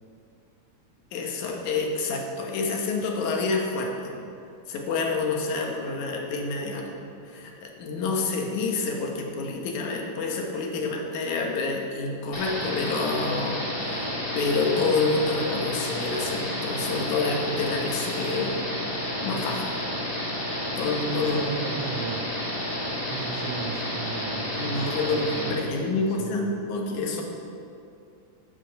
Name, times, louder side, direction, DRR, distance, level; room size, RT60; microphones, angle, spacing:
voice 1, 1.1-4.2 4.7-7.0 7.3-18.7 19.2-19.7 20.8-21.5 24.5-27.2, left 3 dB, 80° left, 1 dB, 2.6 m, -28 dB
sound 1, 12.3-25.5, left 1 dB, 15° left, 1.7 m, -31 dB
voice 2, 21.3-22.3 23.1-26.5, right 6 dB, 75° right, 1 dB, 1.5 m, -37 dB
11.5 x 6.1 x 6.5 m, 2.5 s
omnidirectional pair, 3.4 m